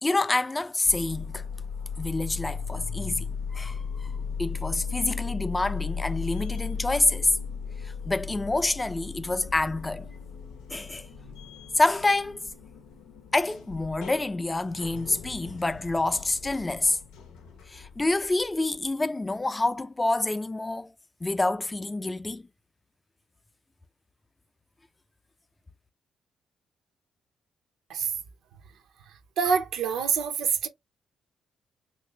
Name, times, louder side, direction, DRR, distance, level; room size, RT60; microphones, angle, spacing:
voice 1, 0.0-1.5 2.0-7.3 7.8-10.1 10.7-11.1 11.8-12.4 13.3-17.0 17.7-20.9 21.2-22.5, left 2 dB, 20° left, 0.5 m, -27 dB
sound 1, 0.9-18.9, left 6 dB, 90° left, 0.6 m, -37 dB
voice 2, 29.1-30.7, right 6 dB, 80° right, 0.7 m, -26 dB
3.2 x 2.6 x 3.2 m
supercardioid pair, 60°, 0 cm